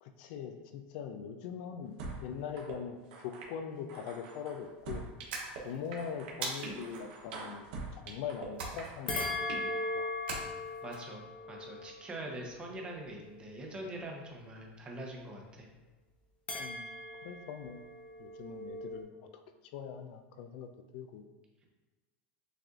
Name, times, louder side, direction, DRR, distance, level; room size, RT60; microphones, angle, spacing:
voice 1, 0.0-5.1 5.6-7.7 7.9-9.2 9.6-10.1 16.6-16.9 17.2-17.8 18.2-19.1 19.7-21.3, left 7 dB, 60° left, 7 dB, 0.4 m, -42 dB
sound 1, 2.0-2.2 2.6-2.8 3.1-3.5 3.9-5.6 5.9-8.5 8.8-9.6, right 4 dB, 70° right, 0.9 m, -44 dB
sound 2, 5.3-5.9 6.4-7.0 8.6-8.9 9.2-9.6 10.3-11.0, right 3 dB, 90° right, 1.1 m, -40 dB
sound 3, 9.1-13.6 16.5-19.0, left 2 dB, 20° left, 0.8 m, -39 dB
voice 2, 10.8-15.7, right 1 dB, 20° right, 0 dB, 0.8 m, -43 dB
6.5 x 2.5 x 2.4 m, 1.3 s
supercardioid pair, 140°, 5 cm